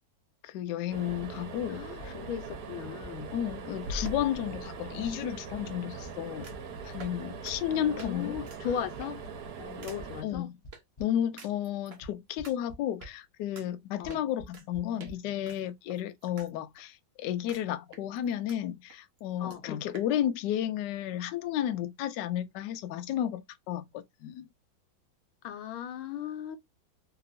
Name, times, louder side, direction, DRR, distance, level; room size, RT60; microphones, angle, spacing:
voice 1, 0.4-2.1 3.3-6.5 6.8-8.3 10.2-10.5 11.0-24.5, left 11 dB, 70° left, 1.1 m, -32 dB
sound 1, 0.9-10.2, right 5 dB, 60° right, 1.2 m, -42 dB
voice 2, 1.7-3.3 7.7-9.2 9.6-10.5 14.0-14.2 19.4-19.9 25.4-26.6, left 9 dB, 90° left, 1.5 m, -37 dB
sound 2, 2.0-2.1 2.5-2.6 3.0-3.1 3.5-3.6 4.0-4.1 4.5-4.6 5.0-5.1 5.5-5.6 6.0-6.1 6.5-6.6 7.0-7.1 7.5-7.6 8.0-9.0 10.0-11.1 12.0-12.1 12.4-12.8 13.0-13.1 14.0-14.1 14.4-14.5 14.7-14.8 15.1-15.2, equal, 30° left, 0.7 m, -45 dB
sound 3, 3.8-5.1 6.4-6.7 7.0-7.2 7.4-7.5 8.0-8.1 8.4-8.6 9.0-9.3 9.8-10.0 10.7-10.8 11.4-12.0 12.4-12.5 13.0-13.1 13.5-13.7 14.1-14.7 15.0-15.1 15.4-16.5 16.8-16.9 17.5-17.6 17.9-18.6 18.9-19.0 19.2-19.3 19.5-19.6 19.9-20.1, equal, 80° right, 0.5 m, -44 dB
3.3 x 2.9 x 2.5 m
omnidirectional pair, 2.2 m